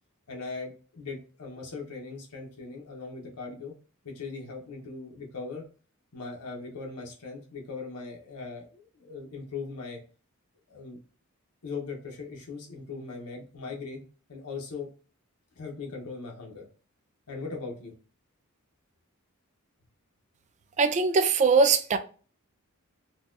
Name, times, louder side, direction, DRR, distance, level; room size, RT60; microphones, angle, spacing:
voice 1, 0.3-3.7 4.0-5.6 6.1-10.0 10.7-11.0 11.6-14.0 14.3-14.9 15.6-16.6 17.3-17.9, left 4 dB, 90° left, 0.9 m, -39 dB
voice 2, 20.8-22.0, right 4 dB, 30° right, 0.3 m, -21 dB
3.9 x 2.3 x 2.5 m
head